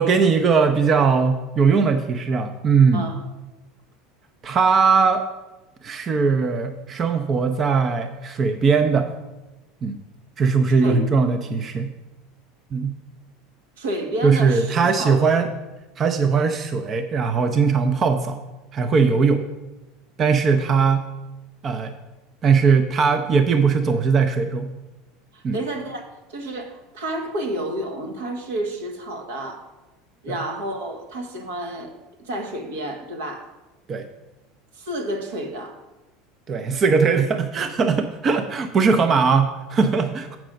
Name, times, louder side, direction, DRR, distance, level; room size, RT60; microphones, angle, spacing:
voice 1, 0.0-3.1 4.4-5.3 5.8-9.1 9.8-10.0 10.4-11.9 12.7-12.9 14.2-15.5 16.0-18.4 18.7-19.4 20.2-21.0 21.6-21.9 22.4-24.7 25.4-25.6 33.9-34.0 36.5-40.4, right 5 dB, 35° right, 7 dB, 0.6 m, -19 dB
voice 2, 10.7-11.0 13.8-15.3 25.3-29.6 30.2-31.9 32.2-33.5 34.7-35.8, right 1 dB, 80° right, 4 dB, 1.3 m, -30 dB
7.5 x 6.0 x 5.1 m, 1.1 s
hypercardioid pair, 90°, 0 cm